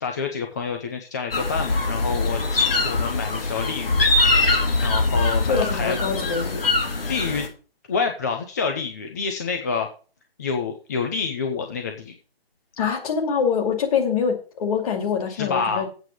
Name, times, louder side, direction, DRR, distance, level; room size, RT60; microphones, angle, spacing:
voice 1, 0.0-4.1 4.8-6.2 7.1-7.5 7.9-9.9 10.4-12.1 15.3-15.8, left 5 dB, 15° left, 4 dB, 0.5 m, -28 dB
sound 1, 1.3-7.5, left 2 dB, 65° left, 3.6 m, -22 dB
voice 2, 5.4-6.6 12.8-15.9, left 6 dB, 35° left, 2 dB, 2.6 m, -24 dB
8.2 x 6.9 x 6.4 m, 0.37 s
figure-of-eight pair, 145°, 31 cm